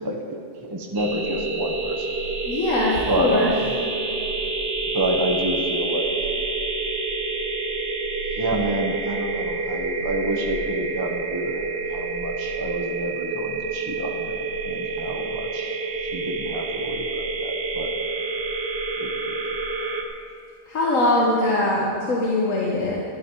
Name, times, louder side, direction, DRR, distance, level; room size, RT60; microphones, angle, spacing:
voice 1, 0.0-2.1 3.1-3.7 4.9-6.1 8.4-14.4 14.6-17.9 19.0-19.3, right 1 dB, 20° right, 1 dB, 0.9 m, -28 dB
sound 1, 1.0-20.0, right 3 dB, 50° right, 1.2 m, -28 dB
voice 2, 2.4-3.5 20.7-23.0, left 1 dB, 90° left, -4 dB, 1.9 m, -22 dB
12.5 x 12.5 x 4.8 m, 2.4 s
omnidirectional pair, 1.3 m